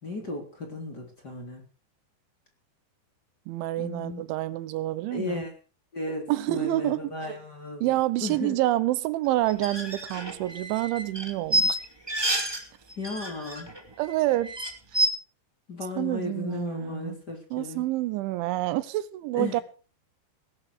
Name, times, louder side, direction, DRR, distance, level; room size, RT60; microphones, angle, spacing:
voice 1, 0.0-1.6 3.8-4.2 5.1-5.5 5.9-8.5 13.0-13.7 15.7-17.9 19.3-19.6, left 3 dB, 25° left, 3.4 m, -35 dB
voice 2, 3.5-5.4 6.3-7.4 7.8-11.8 14.0-14.5 16.0-17.2 17.5-19.6, right 16 dB, 80° right, 3.3 m, -28 dB
sound 1, 9.5-12.6 12.9-13.8 14.1-14.2 14.4-15.1, right 1 dB, 10° right, 1.6 m, -28 dB
19.5 x 11.5 x 4.8 m
omnidirectional pair, 5.4 m